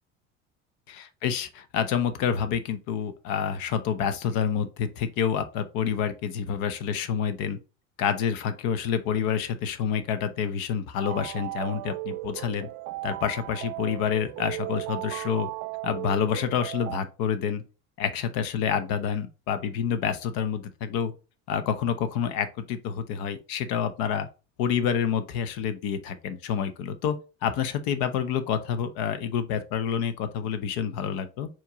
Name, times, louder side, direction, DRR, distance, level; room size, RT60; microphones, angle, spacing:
voice 1, 0.9-7.6 8.0-12.7 13.0-15.5 15.8-17.6 18.0-21.1 21.5-24.3 24.6-27.2 27.4-31.5, left 7 dB, 60° left, 0.8 m, -28 dB
sound 1, 11.0-17.0, right 20 dB, 55° right, 0.4 m, -36 dB
4.5 x 3.0 x 3.5 m
hypercardioid pair, 70°, 40 cm